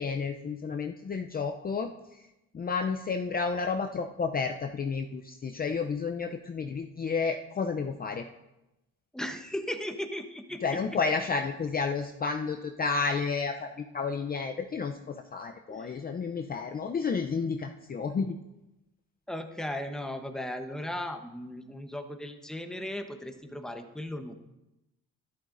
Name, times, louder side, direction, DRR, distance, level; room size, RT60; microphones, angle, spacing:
voice 1, 0.0-1.9 2.5-8.2 10.6-18.4, left 5 dB, 30° left, 5 dB, 0.5 m, -31 dB
voice 2, 9.1-10.8 15.7-16.0 19.3-24.3, left 1 dB, ahead, 6 dB, 0.9 m, -37 dB
11.0 x 11.0 x 2.6 m, 0.93 s
cardioid pair, 90°, 30 cm